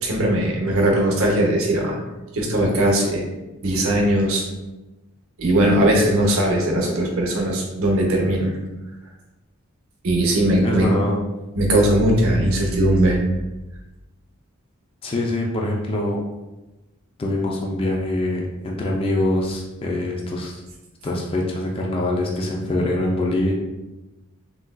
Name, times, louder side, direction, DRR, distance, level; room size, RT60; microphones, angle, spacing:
voice 1, 0.0-2.0 2.3-3.2 3.6-4.4 5.4-8.6 10.0-10.9 11.6-13.2, right 1 dB, 80° right, -1 dB, 0.7 m, -19 dB
voice 2, 10.6-11.2 15.0-16.2 17.2-20.6 21.0-23.5, left 1 dB, 25° left, -1 dB, 0.3 m, -24 dB
3.6 x 2.3 x 2.2 m, 1.0 s
head